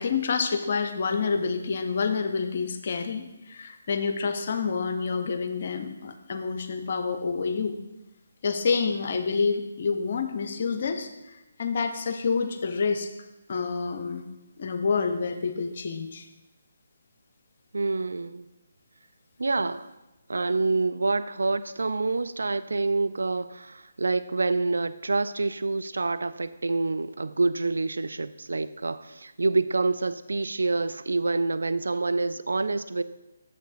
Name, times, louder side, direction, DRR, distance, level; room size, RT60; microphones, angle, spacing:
voice 1, 0.0-7.8 8.4-13.1 13.5-14.3 14.6-16.3, left 5 dB, 45° left, 8 dB, 0.6 m, -28 dB
voice 2, 17.7-18.5 19.4-19.9 20.3-33.0, right 3 dB, 65° right, 12 dB, 0.3 m, -27 dB
8.3 x 7.0 x 2.5 m, 1.0 s
figure-of-eight pair, 140°, 0 cm